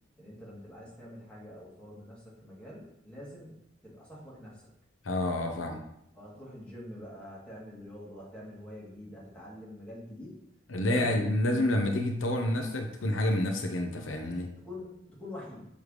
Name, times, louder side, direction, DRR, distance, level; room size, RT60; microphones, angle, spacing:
voice 1, 0.2-4.7 6.1-10.4 10.8-11.2 14.6-15.7, left 1 dB, 5° left, -6 dB, 2.0 m, -45 dB
voice 2, 5.0-5.8 10.7-14.5, left 1 dB, 85° left, 3 dB, 0.8 m, -28 dB
6.4 x 3.4 x 4.9 m, 0.79 s
head